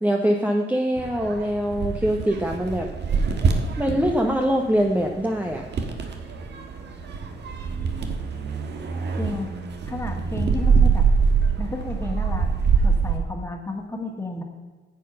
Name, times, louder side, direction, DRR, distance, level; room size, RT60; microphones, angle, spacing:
voice 1, 0.0-2.9 3.8-5.6, equal, 5° right, 1 dB, 1.0 m, -23 dB
sound 1, 1.0-13.2, right 5 dB, 60° right, 1.5 m, -24 dB
voice 2, 9.2-9.5 9.8-11.1 11.6-14.4, left 2 dB, 15° left, 3 dB, 1.9 m, -32 dB
10.0 x 7.5 x 5.5 m, 1.4 s
cardioid pair, 90°, 20 cm